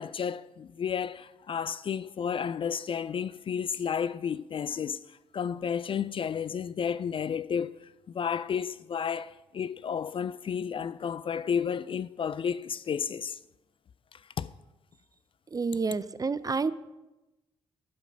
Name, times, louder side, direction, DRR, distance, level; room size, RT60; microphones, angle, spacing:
voice 1, 0.0-13.4 14.1-14.5, left 7 dB, 40° left, 0.4 m, -32 dB
voice 2, 15.5-16.7, right 4 dB, 25° right, 0.5 m, -29 dB
11.5 x 5.2 x 5.3 m
hypercardioid pair, 40°, 14 cm